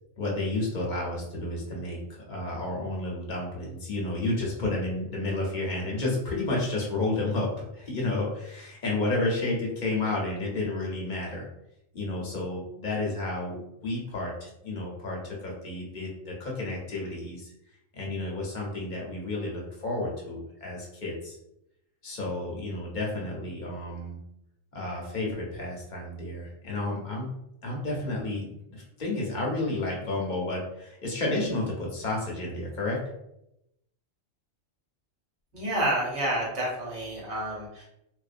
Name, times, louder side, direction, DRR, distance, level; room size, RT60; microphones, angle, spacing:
voice 1, 0.2-11.5 11.9-17.5 17.9-21.4 22.0-24.2 24.7-27.3 27.6-33.0, left 2 dB, 50° left, -3 dB, 0.7 m, -31 dB
voice 2, 35.5-37.8, right 1 dB, 65° right, -6 dB, 1.3 m, -29 dB
2.6 x 2.1 x 2.5 m, 0.84 s
omnidirectional pair, 1.2 m